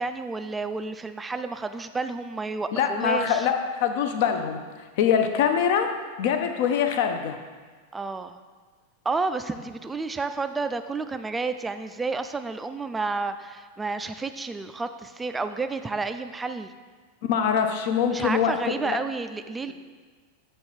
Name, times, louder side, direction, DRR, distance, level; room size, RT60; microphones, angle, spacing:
voice 1, 0.0-3.5 7.9-8.4 9.0-16.7 18.1-19.7, right 3 dB, 10° right, 9 dB, 0.3 m, -30 dB
voice 2, 2.7-4.6 5.0-5.9 6.2-7.4 17.3-19.0, left 7 dB, 50° left, 6 dB, 0.5 m, -24 dB
7.8 x 3.1 x 4.4 m, 1.5 s
figure-of-eight pair, 90°, 0 cm